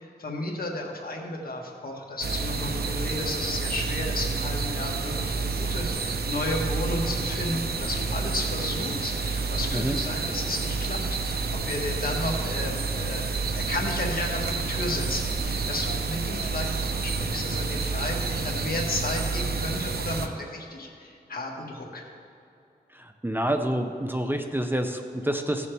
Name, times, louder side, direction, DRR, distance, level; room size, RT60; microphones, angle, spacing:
voice 1, 0.0-11.0 11.2-22.0, left 2 dB, 65° left, 0 dB, 1.5 m, -33 dB
sound 1, 2.2-20.3, right 4 dB, 75° right, 0.7 m, -29 dB
voice 2, 23.2-25.7, right 1 dB, 15° right, 5 dB, 0.6 m, -27 dB
16.0 x 6.9 x 3.4 m, 2.6 s
wide cardioid pair, 80°, 16 cm